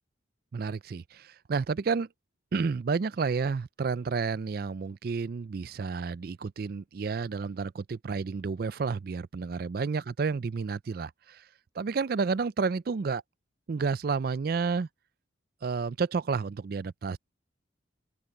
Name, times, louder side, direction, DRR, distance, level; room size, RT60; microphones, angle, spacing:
voice 1, 0.5-2.1 2.5-11.4 11.8-13.2 13.7-14.9 15.6-17.2, right 5 dB, 50° right, 0.4 m, -30 dB
open air
head